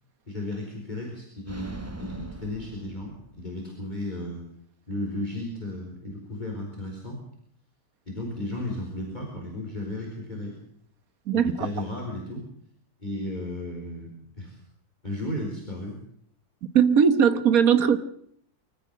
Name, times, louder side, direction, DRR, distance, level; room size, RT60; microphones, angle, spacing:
voice 1, 0.3-4.4 4.9-7.2 8.1-10.5 11.3-12.5 13.0-14.6 15.0-16.0, left 1 dB, 30° left, -1 dB, 4.9 m, -34 dB
sound 1, 1.5-3.6, right 1 dB, 10° right, 1.0 m, -42 dB
voice 2, 16.7-18.0, right 7 dB, 70° right, 12 dB, 1.8 m, -19 dB
25.0 x 14.0 x 7.6 m, 0.68 s
omnidirectional pair, 1.6 m